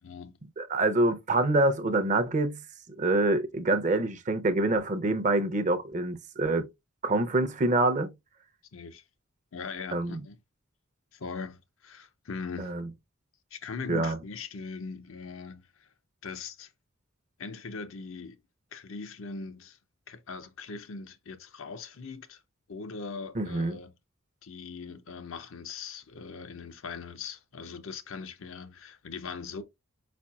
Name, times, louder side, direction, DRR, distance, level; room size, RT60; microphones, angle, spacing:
voice 1, 0.0-0.4 8.7-9.0 9.5-10.4 11.1-12.7 13.5-15.9 16.2-16.7 17.4-18.4 18.7-19.8 20.1-22.4 22.7-23.9 24.4-29.6, left 4 dB, 75° left, 0.6 m, -40 dB
voice 2, 0.6-2.6 3.0-6.7 7.0-8.1 9.9-10.2 12.6-12.8 13.9-14.2 23.4-23.8, right 2 dB, 35° right, 0.6 m, -26 dB
4.8 x 4.2 x 2.3 m
head